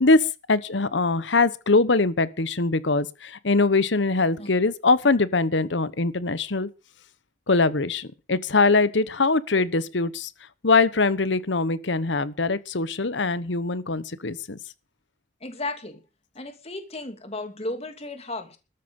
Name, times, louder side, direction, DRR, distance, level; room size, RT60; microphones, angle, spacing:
voice 1, 0.0-6.7 7.5-10.3 10.6-14.6, left 3 dB, 70° left, 1.1 m, -22 dB
voice 2, 15.4-16.0 16.3-18.6, left 2 dB, 35° left, 2.7 m, -34 dB
13.5 x 13.5 x 5.4 m
head